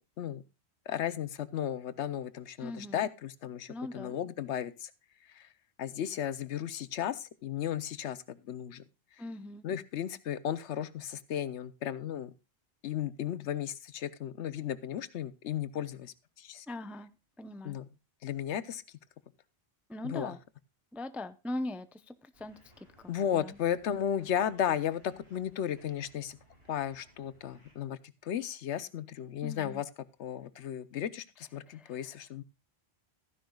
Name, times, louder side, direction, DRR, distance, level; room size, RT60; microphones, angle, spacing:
voice 1, 0.9-4.9 5.4-5.5 5.8-8.8 9.6-12.3 12.8-16.7 17.6-17.9 18.2-18.8 20.0-20.4 23.1-26.4 26.7-29.9 30.2-32.4, left 10 dB, 85° left, 15 dB, 1.0 m, -35 dB
voice 2, 2.6-3.1 3.7-4.2 9.2-9.6 16.7-17.1 17.4-17.8 19.9-20.4 20.9-23.6 29.4-29.8 31.7-32.2, left 1 dB, ahead, 11 dB, 0.3 m, -41 dB
sound 1, 22.3-27.8, equal, 70° right, 5.4 m, -62 dB
15.0 x 10.0 x 2.3 m, 0.27 s
omnidirectional pair, 1.1 m